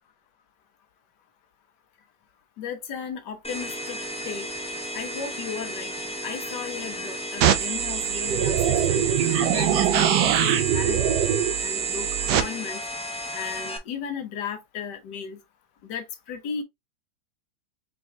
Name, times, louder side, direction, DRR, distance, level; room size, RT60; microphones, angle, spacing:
voice 1, 2.6-4.0 4.2-4.5 4.9-5.9 6.2-11.2 11.6-12.8 13.3-15.4 15.8-16.6, left 6 dB, 80° left, 1.6 m, -35 dB
sound 1, 3.4-13.8, equal, 5° left, 0.6 m, -34 dB
sound 2, 7.4-12.4, right 9 dB, 85° right, 1.3 m, -22 dB
4.5 x 4.0 x 2.4 m
omnidirectional pair, 1.8 m